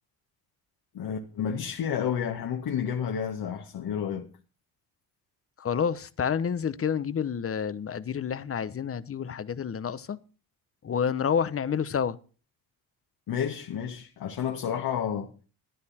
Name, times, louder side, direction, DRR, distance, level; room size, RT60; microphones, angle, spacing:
voice 1, 0.9-4.3 13.3-15.3, left 8 dB, 60° left, 1.8 m, -30 dB
voice 2, 5.6-10.2 10.8-12.2, left 7 dB, 35° left, 1.0 m, -29 dB
14.0 x 11.0 x 4.3 m
supercardioid pair, 70°, 40 cm